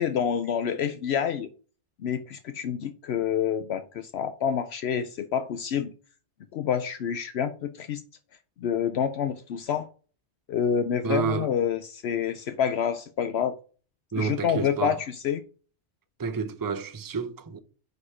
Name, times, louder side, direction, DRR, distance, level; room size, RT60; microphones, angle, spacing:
voice 1, 0.0-1.5 2.0-5.9 6.5-8.0 8.6-9.9 10.5-13.5 14.2-15.4, left 8 dB, 70° left, 0.8 m, -28 dB
voice 2, 11.0-11.5 14.1-15.0 16.2-17.6, right 5 dB, 25° right, 0.5 m, -30 dB
4.9 x 4.7 x 5.8 m
omnidirectional pair, 1.2 m